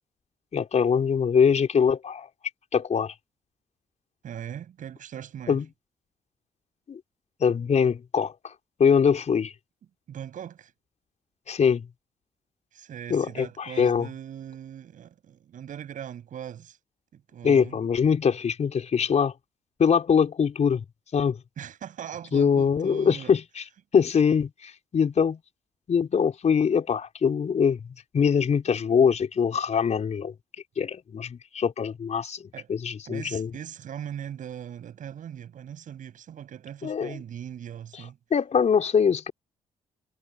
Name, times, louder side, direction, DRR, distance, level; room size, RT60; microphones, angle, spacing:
voice 1, 0.5-2.3 2.7-3.1 5.5-5.6 6.9-7.0 7.4-8.5 8.8-9.5 11.5-11.9 13.1-13.5 13.8-14.1 17.4-19.3 19.8-20.8 21.1-21.4 22.3-23.4 23.9-25.4 25.9-27.8 28.1-30.3 30.8-32.4 32.7-33.5 36.8-37.2 38.3-39.3, left 6 dB, 55° left, 5.0 m, -23 dB
voice 2, 4.2-5.6 10.1-10.7 12.7-16.8 17.1-17.8 21.6-23.3 32.5-32.7 33.1-38.2, right 9 dB, 70° right, 7.6 m, -40 dB
supercardioid pair, 55°, 14 cm